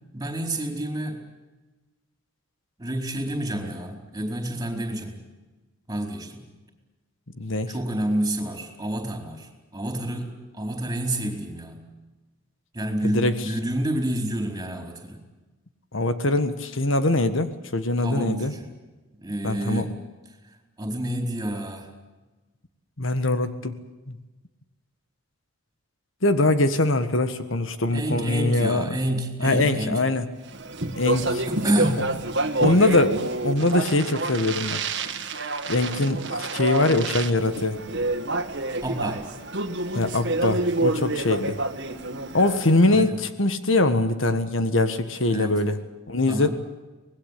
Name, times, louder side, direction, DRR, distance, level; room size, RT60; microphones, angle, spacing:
voice 1, 0.1-1.2 2.8-5.2 5.9-6.5 7.7-11.8 12.7-15.2 18.0-18.7 19.2-20.0 20.8-21.9 27.9-30.0 31.4-32.2 38.8-39.2 42.9-43.2 45.3-45.6 46.3-46.5, right 1 dB, 20° right, 3 dB, 4.6 m, -29 dB
voice 2, 7.4-7.7 13.0-13.5 15.9-18.5 19.4-19.9 23.0-23.8 24.1-24.2 26.2-29.0 29.4-30.3 31.0-31.5 32.6-34.8 35.7-37.8 39.9-41.6 42.3-45.8 46.1-46.5, left 2 dB, 70° left, 10 dB, 1.6 m, -22 dB
Speech, 30.5-42.9, right 2 dB, 60° right, 1.8 m, -28 dB
24.5 x 20.0 x 8.5 m, 1.2 s
head